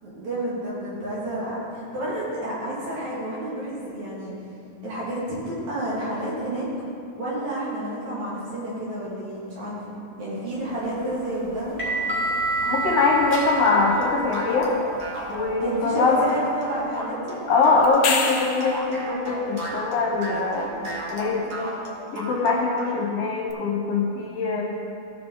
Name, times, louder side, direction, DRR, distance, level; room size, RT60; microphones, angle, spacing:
voice 1, 0.0-4.3 4.8-6.7 7.1-9.8 10.2-11.8 15.6-17.4, right 1 dB, 70° right, -8 dB, 3.7 m, -30 dB
sound 1, 10.7-15.5, right 3 dB, 5° right, 1.4 m, -29 dB
voice 2, 12.7-14.7 15.3-16.3 17.5-21.7 22.1-24.6, left 3 dB, 65° left, -2 dB, 1.9 m, -23 dB
sound 2, 13.7-23.0, right 1 dB, 45° right, 1.3 m, -34 dB
sound 3, 17.8-18.8 23.5-23.6, left 5 dB, 85° left, 1.2 m, -25 dB
15.0 x 5.5 x 4.1 m, 2.6 s
omnidirectional pair, 3.4 m